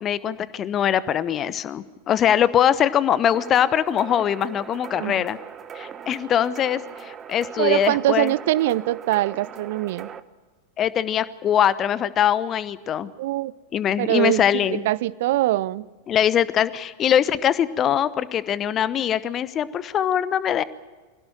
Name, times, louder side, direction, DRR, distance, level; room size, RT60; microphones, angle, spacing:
voice 1, 0.0-5.4 5.7-8.3 10.8-13.1 13.7-14.8 16.1-20.6, left 9 dB, 30° left, 18 dB, 1.0 m, -22 dB
sound 1, 3.3-10.2, right 8 dB, 25° right, 1.1 m, -40 dB
voice 2, 7.6-10.1 13.2-13.5 14.0-14.4 14.8-15.8, right 16 dB, 55° right, 22 dB, 0.6 m, -22 dB
25.5 x 17.0 x 8.9 m, 1.3 s
figure-of-eight pair, 90°, 0 cm